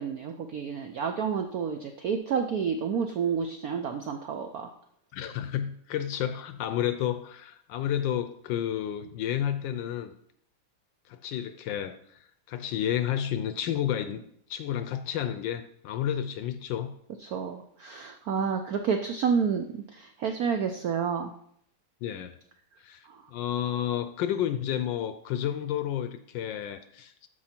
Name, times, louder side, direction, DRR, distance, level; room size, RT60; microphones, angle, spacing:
voice 1, 0.0-4.7 17.2-21.3 23.0-23.2, right 6 dB, 75° right, 6 dB, 0.8 m, -30 dB
voice 2, 5.1-10.1 11.1-14.2 14.5-16.9 22.0-22.4 22.8-27.3, left 10 dB, 75° left, 10 dB, 1.2 m, -31 dB
12.5 x 4.7 x 4.3 m, 0.69 s
omnidirectional pair, 2.3 m